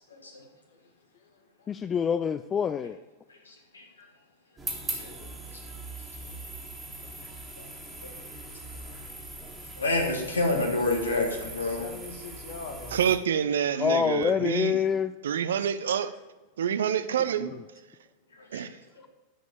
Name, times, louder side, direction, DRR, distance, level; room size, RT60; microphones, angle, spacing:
voice 1, 1.1-1.7 5.4-5.6 8.3-8.5 8.8-9.5 10.2-10.4 11.2-13.1, left 4 dB, 60° left, 1.7 m, -45 dB
voice 2, 1.7-3.0 13.8-15.1, left 7 dB, 25° left, 0.3 m, -26 dB
voice 3, 3.5-3.9 4.9-5.1 7.6-7.7 9.8-11.8 18.4-18.7, left 2 dB, 75° left, 1.9 m, -28 dB
sound 1, 4.6-13.2, right 2 dB, 15° right, 1.9 m, -40 dB
voice 4, 12.9-14.9 15.2-16.1 16.6-17.5 18.5-18.7, right 8 dB, 65° right, 0.5 m, -27 dB
10.0 x 5.1 x 6.8 m
figure-of-eight pair, 90°, 0 cm